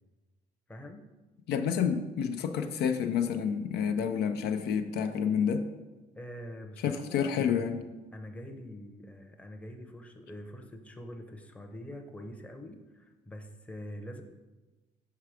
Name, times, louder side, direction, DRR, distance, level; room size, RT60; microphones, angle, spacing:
voice 1, 0.7-1.0 6.1-7.8 8.1-14.2, equal, 10° left, 4 dB, 0.7 m, -44 dB
voice 2, 1.5-5.6 6.8-7.8, left 7 dB, 75° left, 7 dB, 0.5 m, -29 dB
5.8 x 4.6 x 4.9 m, 1.2 s
cardioid pair, 110°, 17 cm